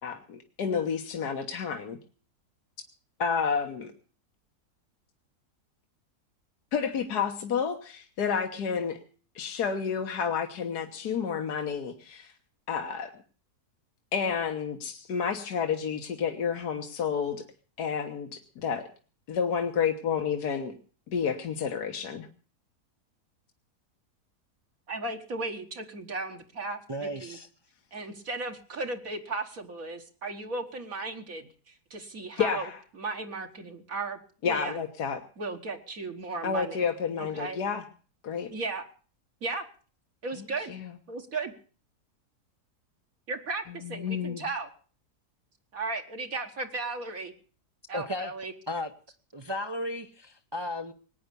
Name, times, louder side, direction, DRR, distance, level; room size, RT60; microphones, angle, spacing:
voice 1, 0.0-2.0 3.2-3.9 6.7-9.0 9.4-12.3 12.7-13.1 14.1-17.4 17.8-18.8 19.3-20.8 21.1-22.3 32.4-32.7 34.4-35.2 36.4-37.8 38.2-38.5 40.7-40.9 43.8-44.4, left 6 dB, 80° left, 1.8 m, -30 dB
voice 2, 24.9-27.4 27.9-34.2 34.5-34.8 35.4-36.8 37.2-37.6 38.5-38.8 39.4-39.7 40.2-40.7 41.1-41.5 43.3-44.7 45.7-47.3 47.9-48.5, right 3 dB, 60° right, 1.8 m, -35 dB
voice 3, 26.9-27.5 47.9-48.3 48.7-48.9 49.3-50.9, left 1 dB, 25° right, 0.5 m, -34 dB
19.5 x 9.4 x 6.8 m
omnidirectional pair, 1.7 m